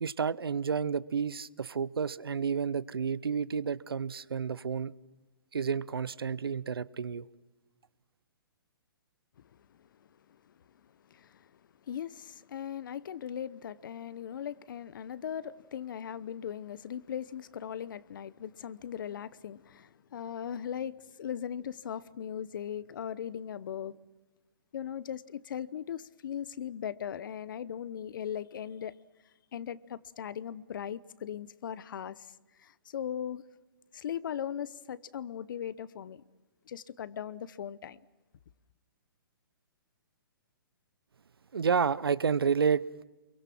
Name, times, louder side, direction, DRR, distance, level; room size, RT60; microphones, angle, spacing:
voice 1, 0.0-4.9 5.5-7.3 41.5-42.8, right 6 dB, 90° right, 0.7 m, -30 dB
voice 2, 11.1-11.5 11.9-24.0 24.7-28.9 29.5-32.3 32.6-33.4 33.9-36.2 36.7-38.0, left 9 dB, 60° left, 0.9 m, -39 dB
28.5 x 23.0 x 6.0 m
hypercardioid pair, 135°, 12 cm